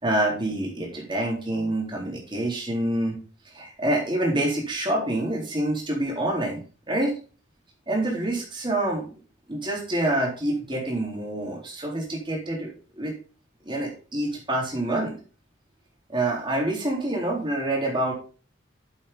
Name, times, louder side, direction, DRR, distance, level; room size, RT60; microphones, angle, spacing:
voice 1, 0.0-3.2 3.5-6.6 6.9-7.1 7.9-9.1 9.5-12.7 13.0-13.1 13.7-15.1 16.1-18.1, right 1 dB, 25° right, -1 dB, 3.9 m, -26 dB
9.2 x 7.7 x 4.1 m, 0.37 s
head